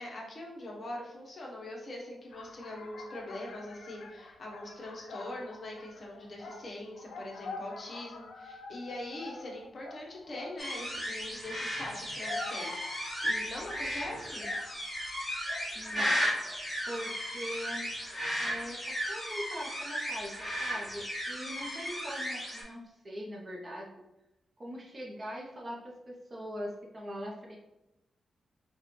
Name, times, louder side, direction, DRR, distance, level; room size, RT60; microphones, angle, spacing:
voice 1, 0.0-14.5, left 1 dB, 40° left, -2 dB, 0.9 m, -42 dB
sound 1, 2.3-10.7 11.8-16.6 16.9-17.3, left 3 dB, 80° left, 0.5 m, -47 dB
sound 2, 10.6-22.6, equal, 15° left, 1.4 m, -35 dB
voice 2, 15.7-16.2 16.9-17.9 18.4-24.0 24.6-27.6, equal, 30° right, -2 dB, 0.6 m, -42 dB
4.9 x 2.2 x 3.1 m, 0.95 s
wide cardioid pair, 145°, 0 cm